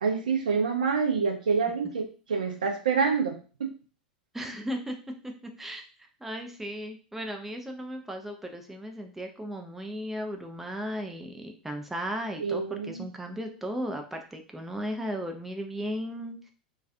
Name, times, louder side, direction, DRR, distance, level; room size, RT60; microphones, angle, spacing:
voice 1, 0.0-3.7 12.4-13.0, right 5 dB, 65° right, 4 dB, 0.5 m, -27 dB
voice 2, 4.3-5.8 6.2-16.5, equal, 5° right, 4 dB, 0.4 m, -36 dB
2.3 x 2.3 x 2.5 m, 0.37 s
figure-of-eight pair, 85°, 5 cm